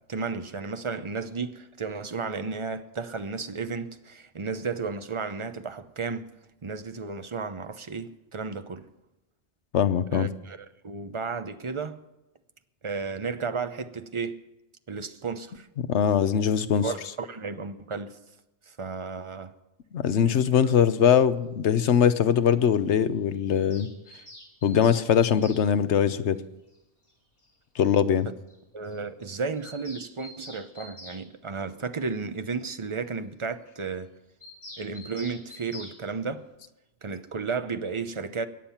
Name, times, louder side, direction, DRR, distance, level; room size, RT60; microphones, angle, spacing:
voice 1, 0.1-6.3 6.6-8.9 10.1-12.0 12.8-14.4 14.9-15.7 16.8-18.2 18.7-19.5 20.2-20.4 28.7-34.1 34.8-36.5 37.0-38.5, right 4 dB, 30° right, 0.8 m, -33 dB
voice 2, 9.7-10.3 15.9-16.8 19.9-23.9 24.6-26.4 27.8-28.3, left 8 dB, 80° left, 1.1 m, -22 dB
Bird vocalization bird call bird song, 23.5-25.6 27.1-27.2 27.4-27.5 27.8-27.9 28.2-28.3 28.5-28.6 28.8-29.0 29.2-31.2 34.4-36.0, left 1 dB, 35° left, 2.8 m, -46 dB
22.5 x 8.9 x 5.7 m
omnidirectional pair, 1.2 m